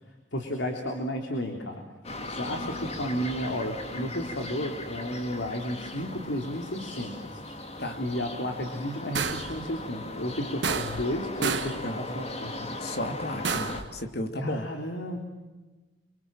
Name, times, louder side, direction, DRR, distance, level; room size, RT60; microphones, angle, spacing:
voice 1, 0.3-1.8 2.3-7.4 8.0-12.8 14.4-15.2, equal, 85° left, 3 dB, 3.3 m, -33 dB
sound 1, 2.0-13.8, left 2 dB, 35° left, 2.7 m, -38 dB
sound 2, 9.1-9.6 10.6-11.1 11.4-11.8 13.4-13.9, right 5 dB, 70° right, 1.5 m, -30 dB
voice 2, 12.8-14.7, left 1 dB, 60° left, 6 dB, 2.6 m, -33 dB
29.5 x 25.0 x 7.6 m, 1.2 s
head